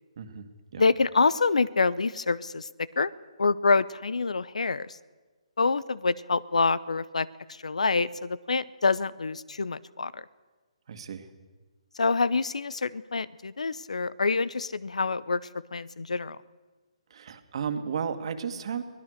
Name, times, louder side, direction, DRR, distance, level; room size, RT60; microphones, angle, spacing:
voice 1, 0.2-0.5 0.7-0.8 10.9-11.3 17.1-18.8, right 7 dB, 55° right, 8 dB, 2.1 m, -33 dB
voice 2, 0.8-3.1 3.4-5.0 5.6-10.2 12.0-15.4 15.7-16.4, left 4 dB, 80° left, 21 dB, 0.8 m, -26 dB
23.5 x 19.0 x 6.6 m, 1.3 s
hypercardioid pair, 145°, 4 cm